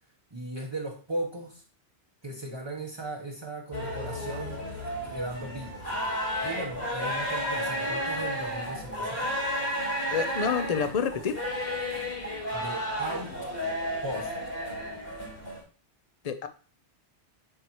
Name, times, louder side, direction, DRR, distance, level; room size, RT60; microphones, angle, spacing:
voice 1, 0.3-1.6 2.2-5.9 6.4-9.4 12.5-13.4 14.0-14.3, right 2 dB, 25° right, 0 dB, 0.9 m, -37 dB
sound 1, 3.7-15.6, equal, 55° left, 3.9 m, -32 dB
voice 2, 10.1-11.4 16.2-16.5, left 6 dB, 40° left, 9 dB, 0.7 m, -28 dB
11.0 x 4.7 x 3.0 m, 0.38 s
omnidirectional pair, 1.2 m